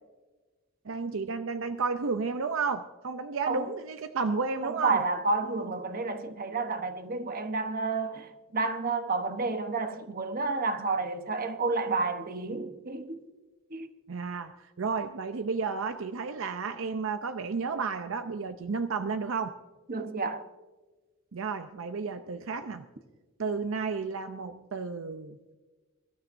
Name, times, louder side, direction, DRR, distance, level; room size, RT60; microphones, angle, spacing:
voice 1, 0.9-5.0 14.1-19.5 21.3-22.9 23.4-25.6, right 4 dB, 65° right, 0.6 m, -32 dB
voice 2, 4.6-13.2 13.7-13.9 19.9-20.5, right 3 dB, 45° right, 1.0 m, -30 dB
23.0 x 13.0 x 2.6 m
head